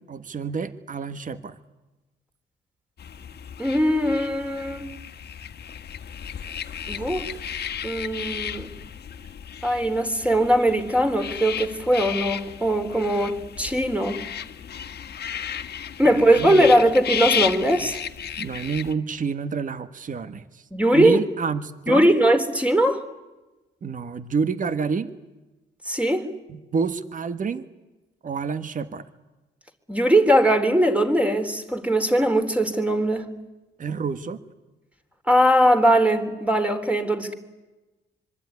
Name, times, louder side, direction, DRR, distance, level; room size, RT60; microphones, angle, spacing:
voice 1, 0.0-1.5 16.1-16.7 18.4-20.6 20.9-22.1 23.8-25.1 26.5-27.6 28.2-29.0 33.8-34.4, right 5 dB, 40° right, 12 dB, 1.6 m, -28 dB
sound 1, 3.0-18.9, left 8 dB, 55° left, 1.6 m, -33 dB
voice 2, 3.6-4.9 6.9-7.3 7.8-8.7 9.6-14.2 16.0-18.0 20.7-21.2 21.9-23.0 25.8-26.3 29.9-33.3 35.3-37.3, right 1 dB, 5° right, 6 dB, 3.7 m, -20 dB
25.0 x 24.0 x 9.7 m, 1.1 s
cardioid pair, 90°, 20 cm